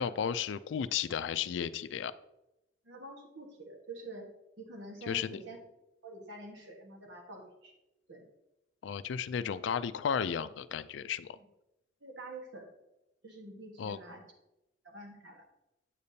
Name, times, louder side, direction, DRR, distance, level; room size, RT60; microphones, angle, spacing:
voice 1, 0.0-2.1 5.0-5.4 8.8-11.4 13.8-14.0, left 7 dB, 80° left, 14 dB, 0.4 m, -34 dB
voice 2, 2.8-4.3 4.6-5.6 6.0-7.7 8.1-8.2 11.3-11.4 12.0-12.7 13.2-14.2 14.8-15.4, right 2 dB, 80° right, 2 dB, 1.4 m, -47 dB
8.4 x 6.7 x 2.8 m, 0.91 s
head